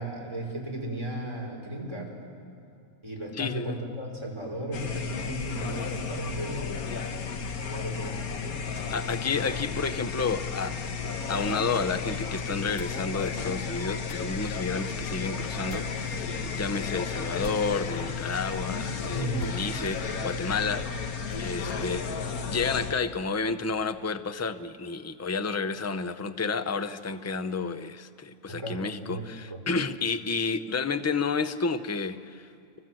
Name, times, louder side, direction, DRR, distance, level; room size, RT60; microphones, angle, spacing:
voice 1, 0.0-2.1 3.0-7.0 7.7-8.2 19.1-19.4 28.5-28.8 29.1-29.6, right 1 dB, 20° right, -1 dB, 5.1 m, -35 dB
voice 2, 3.3-3.8 8.9-10.8 11.3-22.2 22.5-32.4, left 4 dB, 20° left, 10 dB, 0.4 m, -31 dB
sound 1, 4.7-22.9, left 5 dB, 80° left, 1.8 m, -33 dB
sound 2, 12.5-18.1 18.5-18.6 18.9-19.0 19.4-21.5, left 4 dB, 65° left, 1.4 m, -47 dB
29.0 x 24.0 x 7.7 m, 2.4 s
omnidirectional pair, 1.5 m